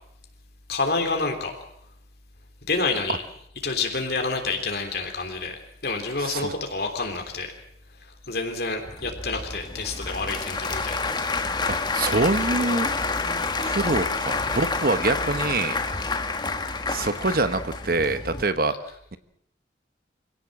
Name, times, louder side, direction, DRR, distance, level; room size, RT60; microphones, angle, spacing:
voice 1, 0.7-1.5 2.7-3.2 3.6-7.5 7.9-11.1 13.4-13.5, left 3 dB, 60° left, 3 dB, 3.4 m, -28 dB
voice 2, 6.2-6.5 11.7-12.9 13.6-15.8 16.9-18.7, right 3 dB, 55° right, 11 dB, 1.1 m, -25 dB
Applause / Crowd, 8.8-18.4, left 3 dB, 25° left, 1.4 m, -28 dB
24.5 x 17.0 x 7.6 m, 0.72 s
head